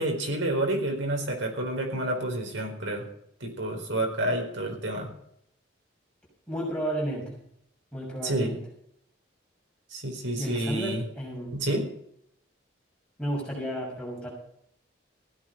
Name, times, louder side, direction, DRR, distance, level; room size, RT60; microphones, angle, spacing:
voice 1, 0.0-3.0 3.4-5.1 8.2-8.6 9.9-11.0 11.5-11.8, right 1 dB, 85° right, 2 dB, 4.5 m, -29 dB
voice 2, 6.5-7.4 7.9-8.6 10.3-11.5 13.2-14.3, right 1 dB, 5° left, -4 dB, 6.5 m, -32 dB
16.0 x 10.5 x 5.7 m, 0.70 s
head